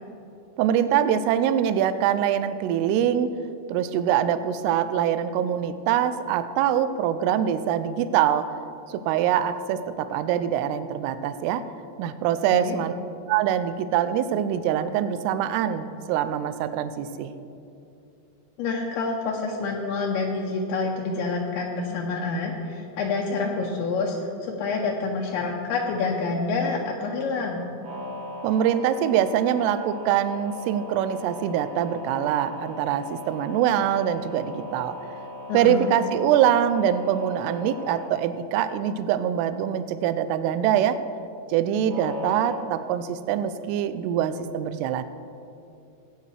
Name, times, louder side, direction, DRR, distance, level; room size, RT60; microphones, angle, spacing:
voice 1, 0.6-3.3 3.7-8.5 8.9-11.6 12.0-12.9 13.3-17.3 28.4-35.0 35.5-41.0 41.5-45.0, right 10 dB, 85° right, 12 dB, 2.6 m, -24 dB
voice 2, 18.6-27.6 35.5-35.9, left 4 dB, 80° left, -1 dB, 2.5 m, -27 dB
sound 1, 27.8-38.1 41.9-42.6, left 1 dB, 55° right, 1.6 m, -38 dB
16.5 x 9.0 x 3.3 m, 2.7 s
omnidirectional pair, 4.8 m